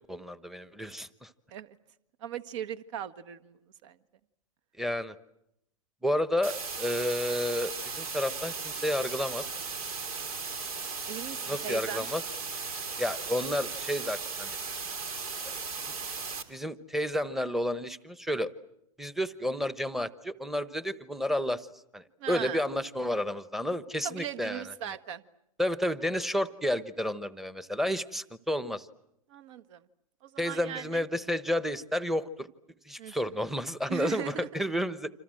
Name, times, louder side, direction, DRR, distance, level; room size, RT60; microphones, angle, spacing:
voice 1, 0.1-1.3 4.8-5.2 6.0-9.4 11.5-12.2 13.0-14.6 15.5-15.6 16.5-18.5 19.0-21.7 21.9-24.6 25.6-28.9 30.4-32.5 32.9-35.1, left 1 dB, ahead, 14 dB, 1.1 m, -31 dB
voice 2, 2.2-4.0 11.1-12.1 22.2-22.6 24.0-25.2 29.3-29.8 30.2-31.0 33.0-33.1 33.9-34.6, right 10 dB, 55° right, 11 dB, 1.5 m, -38 dB
sound 1, 6.4-16.4, right 5 dB, 75° right, 3.5 m, -36 dB
28.5 x 27.0 x 7.8 m, 0.82 s
hypercardioid pair, 120°, 19 cm